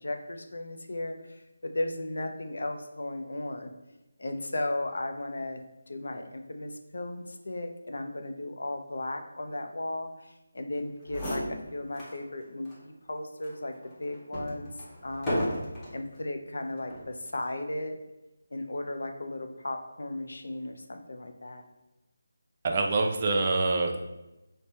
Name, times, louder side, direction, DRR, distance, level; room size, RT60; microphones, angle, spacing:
voice 1, 0.0-3.7 4.2-5.6 5.9-11.4 11.7-13.7 14.0-14.7 15.0-15.4 15.9-18.0 18.5-21.6, left 1 dB, 70° left, 5 dB, 0.5 m, -35 dB
sound 1, 10.8-10.9 11.1-12.2 12.6-12.8 13.4-16.0 16.8-17.1, equal, 10° left, 0.8 m, -34 dB
voice 2, 22.6-24.0, right 3 dB, 30° right, 3 dB, 0.4 m, -25 dB
3.2 x 2.1 x 4.1 m, 0.99 s
figure-of-eight pair, 165°, 0 cm